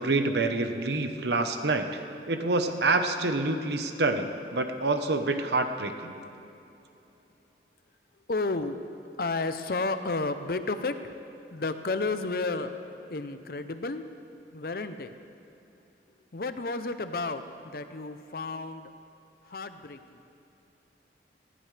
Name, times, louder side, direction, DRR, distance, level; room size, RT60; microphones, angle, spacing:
voice 1, 0.0-6.1, right 2 dB, 70° right, 7 dB, 1.0 m, -27 dB
voice 2, 8.3-8.8 9.2-11.1 11.5-12.7 13.1-14.0 14.5-15.1 16.3-18.9 19.4-20.2, left 3 dB, 55° left, 10 dB, 0.7 m, -32 dB
20.0 x 15.5 x 3.4 m, 2.8 s
head